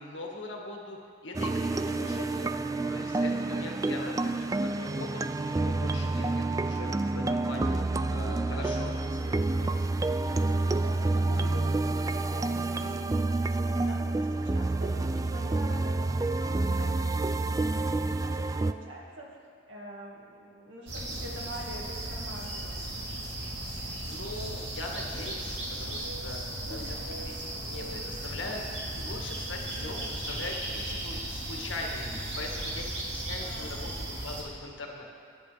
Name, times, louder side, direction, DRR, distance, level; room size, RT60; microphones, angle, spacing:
voice 1, 0.0-2.5 2.9-7.8 8.1-9.9 24.0-35.0, left 2 dB, 85° left, 0 dB, 1.9 m, -41 dB
sound 1, 1.3-18.7, right 2 dB, 20° right, 0.3 m, -28 dB
voice 2, 1.8-2.3 3.9-4.2 7.8-8.2 10.6-19.4 19.7-22.8 26.6-27.2 29.7-30.0 33.4-33.7, equal, 90° right, -3 dB, 2.1 m, -45 dB
sound 2, 20.9-34.4, right 1 dB, 70° right, 2.9 m, -36 dB
21.5 x 10.5 x 3.5 m, 2.2 s
head